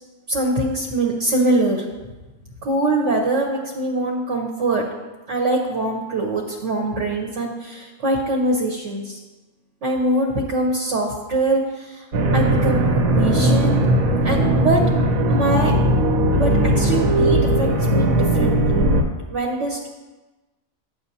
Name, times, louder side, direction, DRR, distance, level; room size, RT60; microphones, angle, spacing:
voice 1, 0.3-1.8 2.6-4.8 5.3-9.2 9.8-12.1 12.3-13.8 14.2-14.8 15.3-15.7 16.3-18.9 19.3-19.9, right 2 dB, 65° right, -1 dB, 1.2 m, -23 dB
sound 1, 12.1-19.0, right 1 dB, 80° right, 1.2 m, -18 dB
9.0 x 6.8 x 2.8 m, 1.2 s
omnidirectional pair, 1.4 m